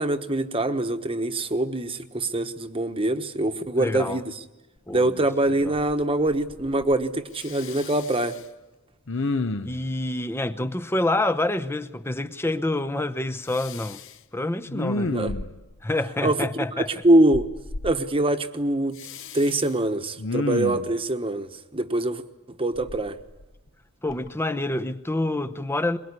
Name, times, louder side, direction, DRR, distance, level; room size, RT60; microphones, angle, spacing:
voice 1, 0.0-4.3 4.9-8.3 14.9-15.3 16.2-16.5 16.8-17.5 17.8-19.0 19.3-22.2 22.6-23.2, right 1 dB, 25° right, 1.2 m, -24 dB
voice 2, 3.8-4.2 4.9-5.1 5.6-5.7 9.6-14.0 14.3-15.1 15.8-16.9 24.0-26.0, left 2 dB, 10° left, 0.8 m, -27 dB
Respiratory sounds, 4.9-5.0 5.5-6.0 6.3-7.0 7.4-8.4 9.1-9.9 13.5-14.1 14.7-15.8 17.3-17.9 19.0-19.7 20.2-20.9 22.8-23.7 24.1-24.3, left 2 dB, 60° left, 0.8 m, -31 dB
22.5 x 22.5 x 9.7 m
head